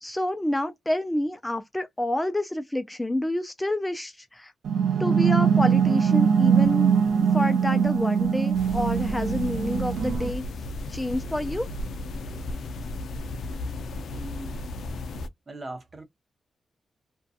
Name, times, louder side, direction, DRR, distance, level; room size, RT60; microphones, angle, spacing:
voice 1, 0.0-4.5 5.0-6.9 7.3-10.4 10.9-11.7, left 1 dB, 10° left, 0.3 m, -28 dB
sound 1, 4.7-10.3, right 7 dB, 80° right, 0.4 m, -22 dB
sound 2, 8.5-15.3, left 2 dB, 75° left, 0.4 m, -34 dB
voice 2, 14.0-14.6 15.5-16.0, right 2 dB, 30° right, 0.8 m, -40 dB
2.6 x 2.2 x 2.4 m
wide cardioid pair, 125°, 0 cm